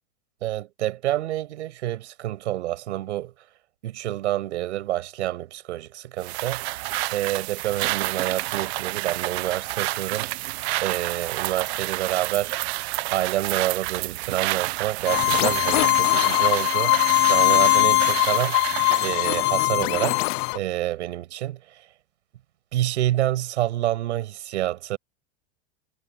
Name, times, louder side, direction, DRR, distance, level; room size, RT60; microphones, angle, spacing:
voice 1, 0.4-3.3 3.8-6.6 7.1-10.3 10.8-12.6 13.1-18.6 19.0-20.3 20.5-21.6 22.7-25.0, right 14 dB, 85° right, 7.0 m, -28 dB
sound 1, 6.2-19.2, right 21 dB, 70° right, 1.1 m, -29 dB
sound 2, 15.1-20.6, left 26 dB, 50° left, 0.6 m, -21 dB
supercardioid pair, 125°, 34 cm